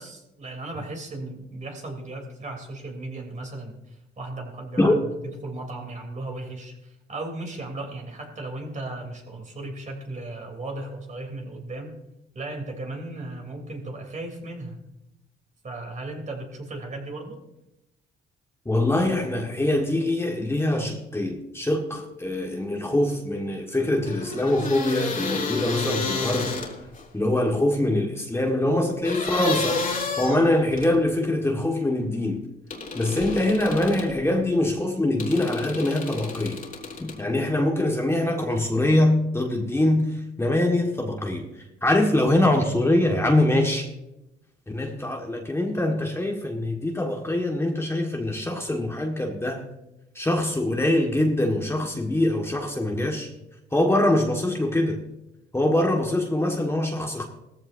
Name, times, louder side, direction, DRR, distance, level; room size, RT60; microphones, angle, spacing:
voice 1, 0.0-5.0 5.2-11.9 12.3-14.8 15.6-17.4, right 2 dB, 35° right, 2 dB, 3.4 m, -36 dB
voice 2, 18.6-26.5 27.1-29.8 30.2-32.4 32.9-36.6 37.0-43.9 44.7-49.7 50.1-53.3 53.7-55.0 55.5-57.3, left 1 dB, 15° left, 1 dB, 1.6 m, -23 dB
sound 1, 24.1-27.0 29.0-31.0 32.7-34.1 35.2-37.2, left 4 dB, 45° left, 3.0 m, -31 dB
17.5 x 14.5 x 2.7 m, 0.91 s
cardioid pair, 90°, 20 cm